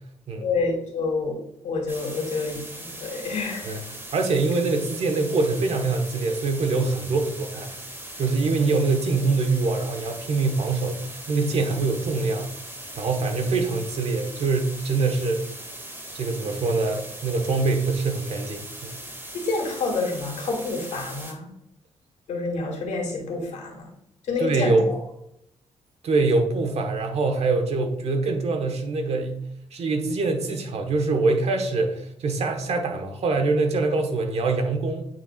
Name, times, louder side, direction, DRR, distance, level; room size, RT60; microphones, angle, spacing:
voice 1, 0.4-1.4 1.6-3.8 19.3-21.5 22.3-23.9 24.2-25.0, left 3 dB, 80° left, 0 dB, 2.3 m, -28 dB
sound 1, 1.9-21.3, right 1 dB, 20° right, 2.2 m, -39 dB
voice 2, 4.1-7.7 8.2-12.5 13.0-15.4 16.1-19.0 24.4-24.9 26.0-29.4 29.7-35.1, right 3 dB, 60° right, 5 dB, 1.2 m, -24 dB
9.2 x 4.4 x 2.4 m, 0.75 s
cardioid pair, 95°, 12 cm